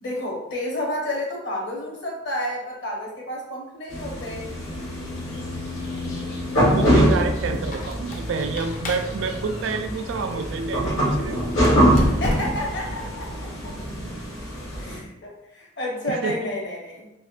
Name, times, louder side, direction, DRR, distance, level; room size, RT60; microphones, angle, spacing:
voice 1, 0.0-4.4 12.1-13.3 13.6-13.7 14.8-17.0, left 1 dB, 60° left, -2 dB, 1.0 m, -30 dB
sound 1, 3.9-15.0, equal, 80° left, 1.3 m, -24 dB
voice 2, 6.7-11.4 16.1-16.4, right 4 dB, 70° right, 7 dB, 0.3 m, -28 dB
Squeak, 7.6-10.7 11.5-12.8, left 1 dB, 40° left, 0.4 m, -33 dB
3.5 x 2.9 x 2.5 m, 0.89 s
head